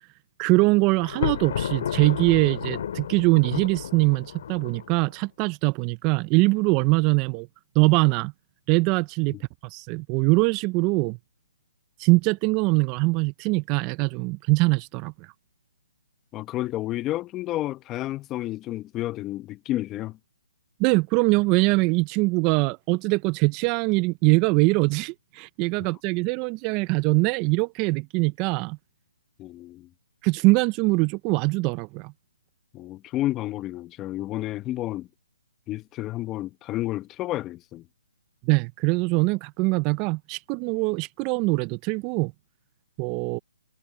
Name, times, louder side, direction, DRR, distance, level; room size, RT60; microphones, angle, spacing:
voice 1, 0.4-7.5 7.8-8.3 8.7-9.4 9.6-11.2 12.0-15.1 20.8-28.8 30.2-32.1 38.4-42.3 43.0-43.4, right 25 dB, 25° right, 0.5 m, -22 dB
Thunder, 1.0-5.1, left 9 dB, 50° left, 2.5 m, -32 dB
voice 2, 16.3-20.2 25.8-25.9 29.4-29.9 32.7-35.1 35.7-37.8, left 15 dB, 20° left, 1.0 m, -31 dB
hypercardioid pair, 155°, 0 cm